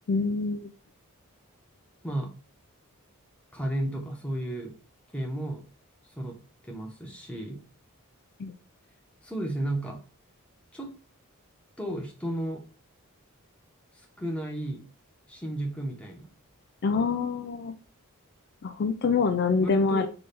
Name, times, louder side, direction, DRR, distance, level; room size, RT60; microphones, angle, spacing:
voice 1, 0.1-0.7 8.4-8.5 16.8-17.7 18.6-20.1, left 4 dB, 50° left, 7 dB, 0.4 m, -25 dB
voice 2, 3.5-4.7 5.1-5.6 6.2-6.4 6.6-7.6 9.2-10.0 10.7-10.9 11.8-12.6 14.2-14.8 15.3-16.3 19.6-20.1, right 1 dB, 5° left, 0 dB, 0.9 m, -33 dB
3.5 x 3.4 x 4.1 m, 0.35 s
head